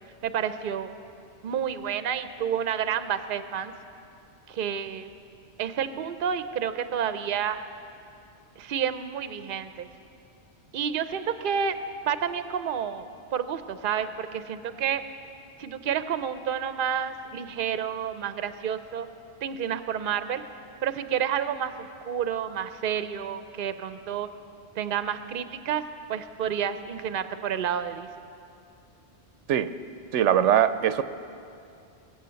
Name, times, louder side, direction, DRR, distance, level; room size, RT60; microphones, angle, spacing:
voice 1, 0.2-0.9 1.4-3.7 4.5-5.1 5.6-7.6 8.6-9.9 10.7-11.8 12.0-15.0 15.6-19.1 19.4-20.4 20.8-24.3 24.8-25.8 26.1-28.1, right 8 dB, 55° right, 11 dB, 0.8 m, -30 dB
voice 2, 30.1-31.0, right 10 dB, 85° right, 13 dB, 0.9 m, -21 dB
22.5 x 8.6 x 6.9 m, 2.6 s
omnidirectional pair, 1.2 m